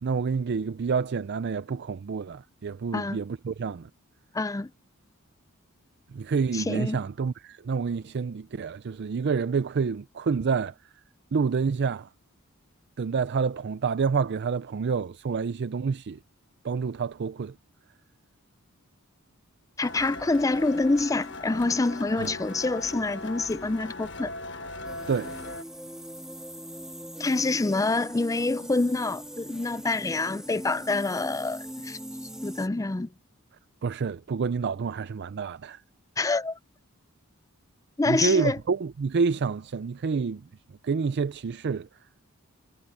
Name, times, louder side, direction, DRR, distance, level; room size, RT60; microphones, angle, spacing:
voice 1, 0.0-3.9 6.1-10.7 11.3-12.1 13.0-16.2 16.6-17.5 22.2-22.3 25.1-25.4 33.8-35.8 38.1-40.4 40.8-41.9, right 5 dB, 50° right, 0.4 m, -28 dB
voice 2, 4.3-4.7 6.5-7.0 19.8-24.3 27.2-32.0 32.4-33.1 36.2-36.6 38.0-38.6, left 3 dB, 15° left, 0.4 m, -26 dB
sound 1, 19.8-25.6, left 2 dB, 55° left, 1.4 m, -39 dB
sound 2, 24.8-32.7, equal, 5° right, 1.8 m, -41 dB
head